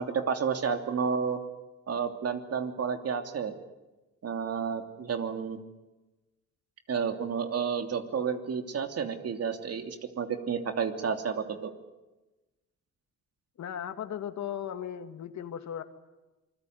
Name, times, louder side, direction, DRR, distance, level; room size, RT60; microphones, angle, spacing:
voice 1, 0.0-1.4 1.9-3.5 4.2-5.6 6.9-11.7, right 6 dB, 55° right, 6 dB, 3.0 m, -31 dB
voice 2, 13.6-15.8, left 9 dB, 65° left, 8 dB, 2.3 m, -37 dB
27.5 x 21.5 x 9.5 m, 1.1 s
cardioid pair, 90°, 30 cm